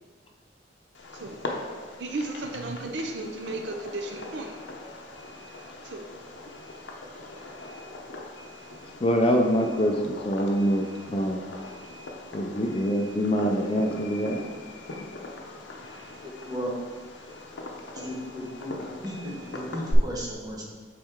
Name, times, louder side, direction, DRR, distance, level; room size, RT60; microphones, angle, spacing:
Fireworks, 0.9-19.9, left 2 dB, 75° left, 0.8 m, -41 dB
voice 1, 2.0-4.5 5.8-6.1, right 2 dB, 65° right, 3 dB, 0.6 m, -34 dB
voice 2, 9.0-11.4 12.3-14.4, equal, 30° left, 3 dB, 0.5 m, -25 dB
voice 3, 16.2-16.7 17.9-20.7, equal, 20° right, -4 dB, 1.3 m, -35 dB
7.5 x 4.3 x 3.6 m, 1.4 s
head